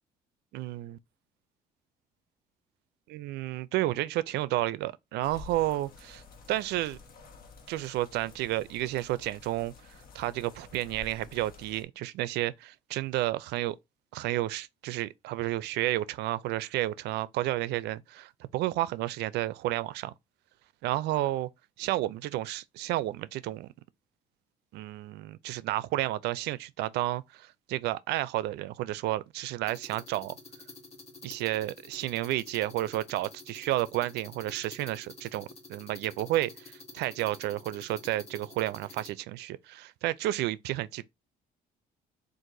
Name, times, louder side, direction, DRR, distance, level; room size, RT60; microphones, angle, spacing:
voice 1, 0.5-1.0 3.1-6.2 6.5-7.0 7.7-9.7 10.1-13.8 14.1-20.1 20.8-21.5 21.8-23.7 24.7-30.3 31.2-41.0, right 15 dB, 80° right, 0.4 m, -31 dB
sound 1, 5.2-11.8, left 4 dB, 60° left, 1.1 m, -51 dB
sound 2, 29.7-39.1, left 3 dB, 40° left, 1.4 m, -49 dB
3.7 x 2.5 x 4.6 m
cardioid pair, 110°, 17 cm